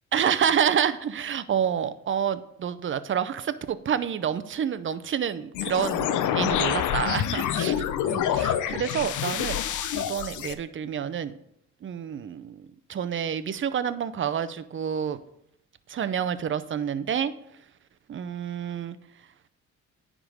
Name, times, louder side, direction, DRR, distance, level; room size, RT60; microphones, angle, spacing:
voice 1, 0.1-9.6 9.9-11.3 11.8-15.2 15.9-17.3 18.1-19.0, right 8 dB, 40° right, 13 dB, 0.6 m, -28 dB
sound 1, 5.5-10.5, left 10 dB, 80° left, 0.7 m, -27 dB
10.0 x 3.8 x 6.4 m, 0.75 s
cardioid pair, 90°, 30 cm